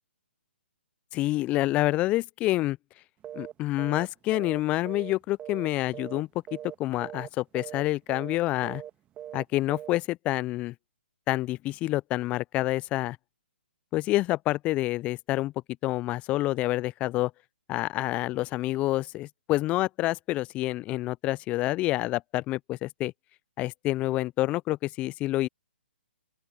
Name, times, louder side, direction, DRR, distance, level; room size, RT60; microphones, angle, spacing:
voice 1, 1.1-2.8 3.3-6.3 6.8-8.8 9.3-10.7 11.3-13.2 13.9-15.5 15.8-17.3 17.7-23.1 23.6-25.5, left 17 dB, 20° left, 0.3 m, -28 dB
sound 1, 3.2-3.5 3.8-4.1 4.3-5.7 5.9-6.2 6.5-6.8 7.0-7.3 7.5-7.8 8.1-8.4 8.6-8.9 9.2-9.4 9.7-10.0, right 11 dB, 20° right, 1.4 m, -40 dB
open air
hypercardioid pair, 135°, 6 cm